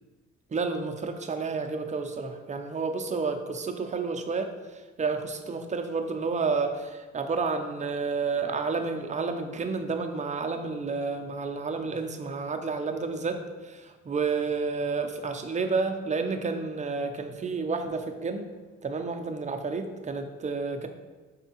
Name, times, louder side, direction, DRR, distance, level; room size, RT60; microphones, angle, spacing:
voice 1, 0.5-18.5 18.8-20.9, right 4 dB, 25° right, 6 dB, 0.5 m, -30 dB
5.4 x 3.4 x 2.9 m, 1.3 s
cardioid pair, 90°, 30 cm